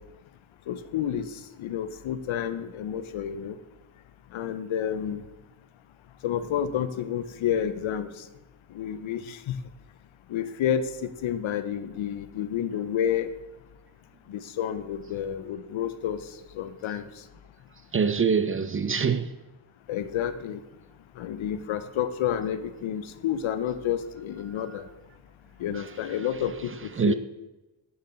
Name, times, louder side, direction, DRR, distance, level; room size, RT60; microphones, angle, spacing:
voice 1, 0.7-3.6 4.3-5.2 6.2-8.3 8.7-9.6 10.3-13.3 14.3-16.2 16.5-17.1 19.9-20.6 21.2-24.9 25.6-27.1, left 9 dB, 85° left, 0.6 m, -30 dB
voice 2, 17.9-19.3 25.7-25.8 27.0-27.1, right 6 dB, 30° right, 0.4 m, -24 dB
6.6 x 5.6 x 4.2 m
cardioid pair, 60°, 46 cm